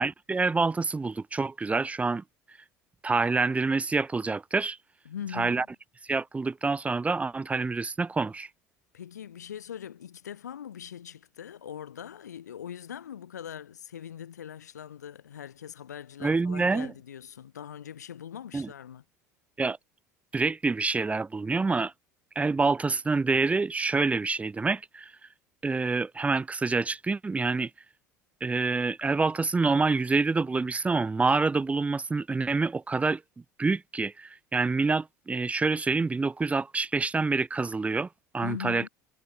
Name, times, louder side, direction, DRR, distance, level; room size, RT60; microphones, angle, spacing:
voice 1, 0.0-2.2 3.0-4.8 5.3-5.6 6.1-8.5 16.2-16.9 18.5-18.7 19.6-19.8 20.3-21.9 22.3-25.1 25.6-27.7 28.4-33.2 33.6-38.1 38.3-38.8, right 3 dB, 15° right, 0.9 m, -27 dB
voice 2, 5.1-5.7 8.9-19.0 38.4-38.9, left 9 dB, 75° left, 3.5 m, -41 dB
figure-of-eight pair, 70°, 9 cm